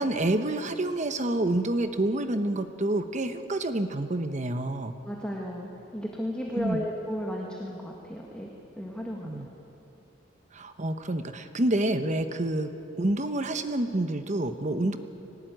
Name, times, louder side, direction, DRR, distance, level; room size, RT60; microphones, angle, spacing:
voice 1, 0.0-5.0 6.5-6.8 9.2-9.5 10.5-12.7 13.0-15.0, right 1 dB, 40° right, 9 dB, 1.0 m, -28 dB
voice 2, 5.1-8.5 8.8-9.4, equal, 5° left, -2 dB, 2.0 m, -34 dB
22.5 x 19.0 x 9.3 m, 2.9 s
head